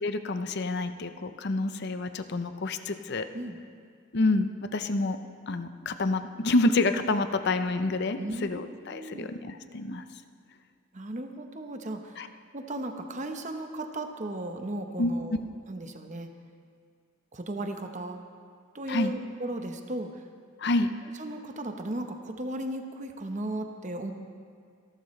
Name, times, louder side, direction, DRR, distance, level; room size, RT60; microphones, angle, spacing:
voice 1, 0.0-3.3 4.1-5.2 5.5-10.0 12.2-12.3 15.0-15.1 18.9-19.1 20.6-20.9, left 2 dB, 55° left, 9 dB, 0.7 m, -28 dB
voice 2, 8.2-8.6 8.9-9.3 10.9-12.3 12.5-15.4 15.7-16.3 17.3-18.2 18.7-20.2 21.2-24.1, right 1 dB, 35° right, 5 dB, 1.0 m, -36 dB
27.0 x 11.5 x 3.2 m, 2.1 s
head